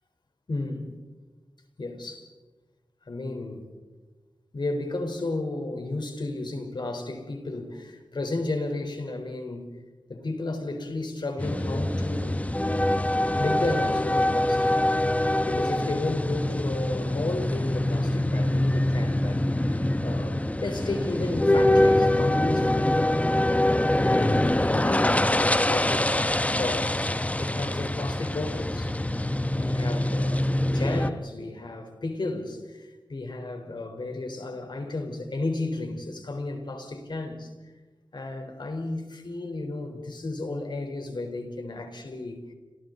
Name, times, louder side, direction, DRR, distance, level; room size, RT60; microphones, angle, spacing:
voice 1, 0.5-1.0 1.8-2.3 3.1-3.6 4.5-9.7 10.1-12.5 13.4-14.7 15.4-23.3 23.9-26.1 26.5-27.1 27.4-28.9 29.5-37.5 38.1-42.4, left 2 dB, 70° left, 4.1 m, -33 dB
sound 1, 11.4-31.1, left 1 dB, 15° left, 1.1 m, -24 dB
29.0 x 28.0 x 4.0 m
cardioid pair, 45°, 8 cm